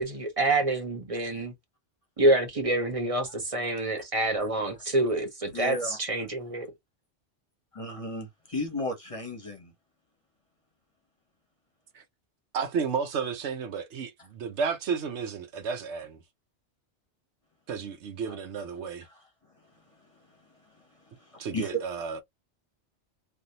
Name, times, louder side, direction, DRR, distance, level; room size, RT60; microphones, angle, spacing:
voice 1, 0.0-1.5 2.2-6.7, right 2 dB, 30° right, 1.0 m, -27 dB
voice 2, 5.5-6.0 7.7-9.7 21.2-21.7, left 2 dB, 30° left, 0.9 m, -34 dB
voice 3, 12.5-16.2 17.7-19.1 21.4-22.2, right 6 dB, 75° right, 1.0 m, -32 dB
3.4 x 2.4 x 2.7 m
omnidirectional pair, 1.2 m